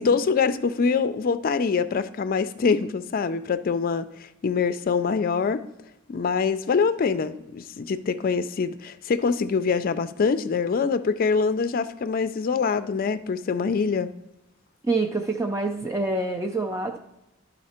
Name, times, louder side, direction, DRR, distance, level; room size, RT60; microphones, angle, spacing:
voice 1, 0.0-5.6 6.1-14.1, left 5 dB, 45° left, 12 dB, 0.4 m, -24 dB
voice 2, 14.8-17.0, right 2 dB, 15° right, 2 dB, 0.5 m, -26 dB
12.0 x 4.1 x 4.3 m, 0.90 s
head